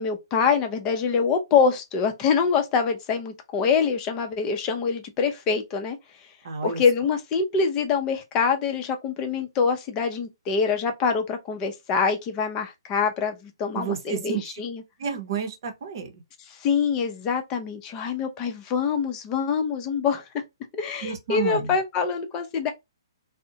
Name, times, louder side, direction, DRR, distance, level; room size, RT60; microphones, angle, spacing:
voice 1, 0.0-6.0 6.6-14.8 16.5-20.2 20.7-22.7, left 5 dB, 25° left, 0.6 m, -25 dB
voice 2, 6.4-6.8 13.7-14.6 15.0-16.2 21.0-21.7, right 6 dB, 55° right, 0.7 m, -31 dB
2.5 x 2.0 x 2.7 m
hypercardioid pair, 135°, 3 cm